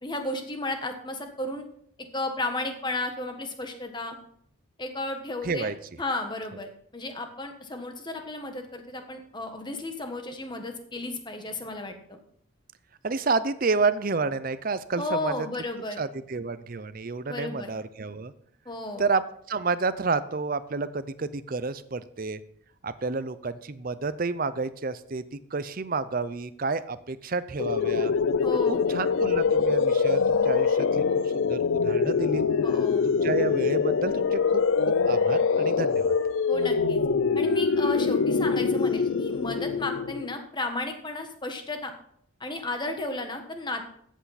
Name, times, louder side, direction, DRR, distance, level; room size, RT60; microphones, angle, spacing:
voice 1, 0.0-1.6 2.0-4.2 4.8-5.7 6.0-12.2 15.0-16.0 17.3-17.7 18.6-19.0 28.4-28.9 32.6-33.0 36.5-37.0 37.3-41.9 42.4-43.8, left 2 dB, 20° left, 5 dB, 1.3 m, -33 dB
voice 2, 5.4-5.7 13.0-15.5 16.0-18.3 19.0-19.2 19.5-22.4 22.8-25.2 25.5-28.1 28.9-31.0 31.4-32.4 33.0-36.2, right 4 dB, 40° right, 14 dB, 0.6 m, -30 dB
sound 1, 27.6-40.4, left 5 dB, 70° left, 0.4 m, -24 dB
13.5 x 8.2 x 4.1 m, 0.66 s
head